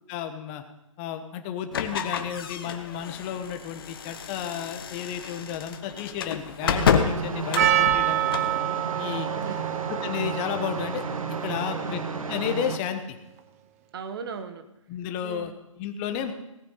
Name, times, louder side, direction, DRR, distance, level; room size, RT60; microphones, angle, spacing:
voice 1, 0.1-0.6 1.0-8.2 9.0-9.3 9.9-11.0 11.4-13.2 14.9-16.3, left 9 dB, 20° left, 7 dB, 1.2 m, -32 dB
sound 1, 1.7-8.6, left 7 dB, 45° left, 1.2 m, -29 dB
sound 2, 6.6-12.8, right 5 dB, 85° right, 1.4 m, -33 dB
Percussion, 7.6-12.8, right 13 dB, 25° right, 0.8 m, -28 dB
voice 2, 9.1-9.8 11.7-12.0 13.9-14.7 15.2-15.5, right 6 dB, 45° right, 10 dB, 1.4 m, -38 dB
17.5 x 8.8 x 5.7 m, 0.90 s
hypercardioid pair, 150°, 17 cm